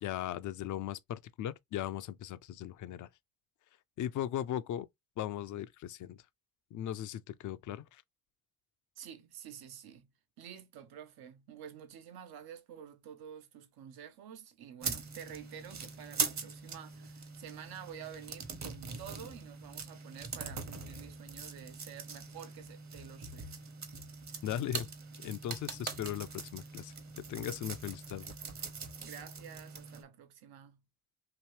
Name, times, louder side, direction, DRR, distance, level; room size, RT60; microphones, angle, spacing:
voice 1, 0.0-3.1 4.0-4.9 5.2-6.2 6.7-8.0 24.4-24.9 25.2-26.9 27.3-28.3, left 11 dB, 55° left, 0.5 m, -38 dB
voice 2, 9.0-10.1 10.4-23.5 29.0-30.8, right 9 dB, 75° right, 0.8 m, -49 dB
sound 1, 14.8-30.0, right 5 dB, 45° right, 1.0 m, -42 dB
3.0 x 2.7 x 3.1 m
supercardioid pair, 60°, 37 cm